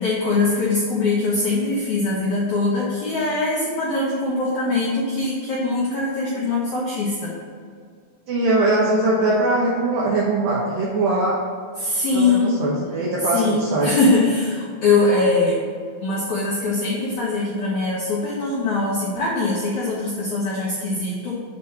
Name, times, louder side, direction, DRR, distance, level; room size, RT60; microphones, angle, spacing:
voice 1, 0.0-7.3 11.8-12.6 13.3-15.6 16.0-21.4, left 3 dB, 80° left, -5 dB, 1.7 m, -22 dB
voice 2, 8.3-11.4 12.1-13.9, right 2 dB, 70° right, -4 dB, 2.2 m, -21 dB
8.3 x 4.2 x 6.4 m, 2.2 s
omnidirectional pair, 5.2 m